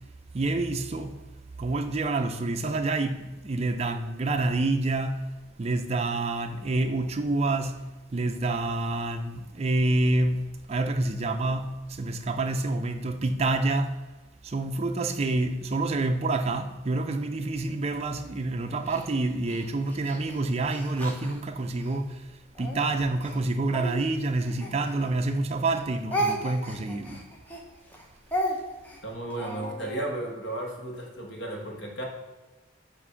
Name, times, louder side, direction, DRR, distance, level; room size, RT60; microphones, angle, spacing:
voice 1, 0.3-1.2 1.6-5.2 5.6-14.0 14.4-22.3 22.6-27.2, right 2 dB, 30° right, 0.4 m, -28 dB
Speech, 18.9-22.0 22.5-25.4 25.6-30.0, right 1 dB, 10° left, 0.6 m, -34 dB
voice 2, 29.0-32.0, right 1 dB, 60° left, 1.2 m, -34 dB
6.5 x 2.6 x 5.6 m
head